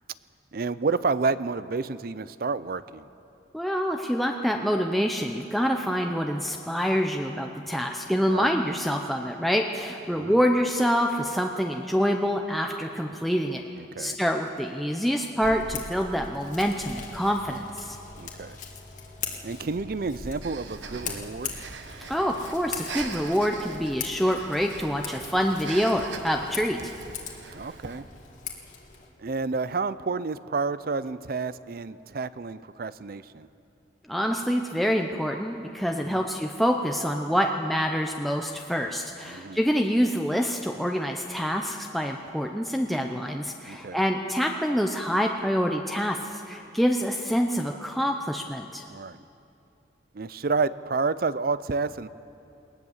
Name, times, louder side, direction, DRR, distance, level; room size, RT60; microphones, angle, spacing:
voice 1, 0.5-3.1 8.3-8.5 10.1-10.4 13.8-14.2 18.2-18.6 19.4-21.5 27.5-28.0 29.2-33.5 36.0-36.2 39.2-39.6 43.7-44.0 48.9-49.2 50.1-52.1, right 4 dB, 55° right, 16 dB, 0.5 m, -30 dB
voice 2, 3.5-13.6 14.0-18.0 22.1-26.9 34.1-48.8, equal, ahead, 2 dB, 0.7 m, -26 dB
Scissors, 15.4-29.1, left 6 dB, 45° left, 1.8 m, -41 dB
Breathing, 20.4-28.1, right 4 dB, 85° right, 1.3 m, -41 dB
19.5 x 19.0 x 7.3 m, 2.7 s
head